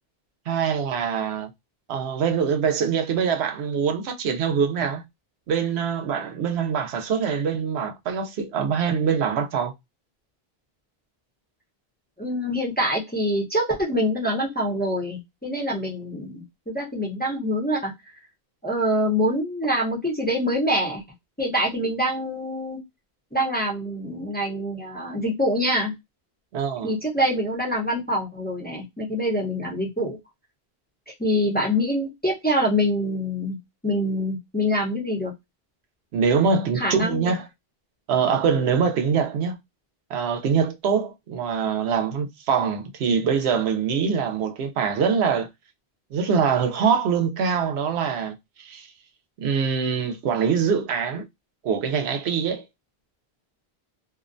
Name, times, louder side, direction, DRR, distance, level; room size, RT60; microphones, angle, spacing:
voice 1, 0.5-1.5 1.9-5.0 5.5-9.7 26.5-26.9 36.1-37.5 38.1-39.6 40.1-45.5 46.1-48.9 49.4-51.2 51.6-52.6, right 6 dB, 85° right, 0.8 m, -24 dB
voice 2, 12.2-17.9 18.6-21.0 21.4-22.8 23.3-25.9 26.8-30.2 31.1-33.6 33.8-35.3 36.7-37.3, equal, 10° left, 0.6 m, -25 dB
2.5 x 2.1 x 2.4 m
omnidirectional pair, 1.1 m